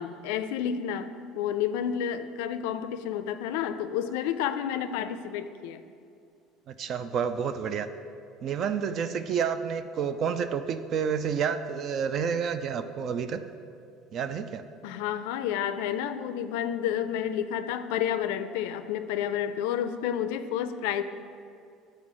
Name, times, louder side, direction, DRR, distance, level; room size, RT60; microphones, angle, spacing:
voice 1, 0.0-5.8 14.8-21.0, left 9 dB, 85° left, 11 dB, 0.3 m, -30 dB
voice 2, 6.7-7.9 8.4-13.4 14.1-14.7, right 7 dB, 50° right, 10 dB, 0.3 m, -29 dB
7.4 x 4.3 x 4.8 m, 2.4 s
supercardioid pair, 115°, 0 cm